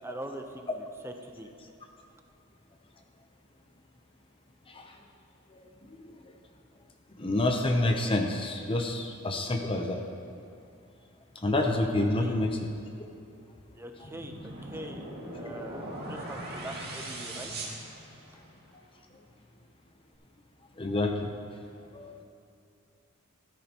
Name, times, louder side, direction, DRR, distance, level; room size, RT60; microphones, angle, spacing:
voice 1, 0.0-1.5 12.2-12.4 13.7-15.0 15.4-17.5, right 1 dB, 10° right, 4 dB, 0.8 m, -42 dB
voice 2, 7.2-10.0 11.4-12.7 20.8-21.3 21.9-22.1, left 2 dB, 25° left, 3 dB, 0.7 m, -28 dB
sound 1, 14.0-18.6, right 1 dB, 50° right, 2.3 m, -40 dB
14.0 x 13.0 x 3.0 m, 2.6 s
head